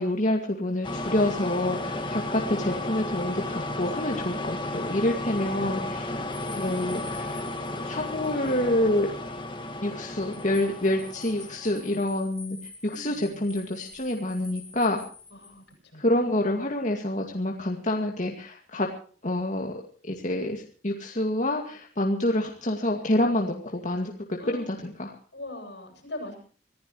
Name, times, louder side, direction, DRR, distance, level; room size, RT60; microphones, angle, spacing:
voice 1, 0.0-6.1 6.5-7.4 7.8-9.1 9.8-12.6 12.8-15.0 16.0-18.9 19.2-19.7 20.0-25.1, left 1 dB, 45° left, 1 dB, 2.3 m, -27 dB
sound 1, 0.8-12.1, left 2 dB, 30° left, 2.1 m, -33 dB
sound 2, 6.3-8.6 8.9-9.0 10.0-15.7, left 3 dB, 5° left, 5.4 m, -47 dB
voice 2, 15.3-15.6 15.9-16.0 24.4-24.6 25.3-26.4, left 1 dB, 75° left, 3 dB, 7.7 m, -41 dB
26.0 x 15.0 x 3.2 m, 0.42 s
head